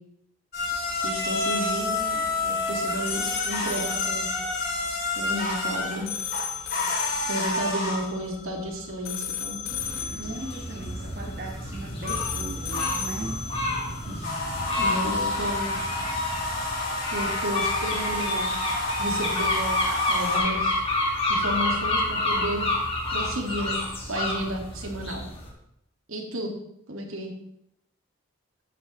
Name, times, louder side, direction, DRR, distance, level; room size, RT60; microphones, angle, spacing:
sound 1, 0.5-20.4, left 2 dB, 45° left, 2.9 m, -30 dB
voice 1, 1.0-4.3 5.2-6.1 7.3-9.6 14.0-14.4 14.8-15.7 17.1-18.5 19.0-20.8 21.3-22.7 23.1-23.8 24.1-25.2 26.1-26.5 26.9-27.3, equal, 75° right, 2 dB, 1.9 m, -32 dB
sound 2, 3.1-14.4, left 7 dB, 75° left, 1.0 m, -35 dB
voice 2, 7.3-7.8 9.9-13.4, right 2 dB, 45° right, -1 dB, 1.3 m, -38 dB
sound 3, 9.7-25.5, left 2 dB, 25° left, 1.9 m, -29 dB
13.5 x 9.0 x 3.1 m, 0.77 s
head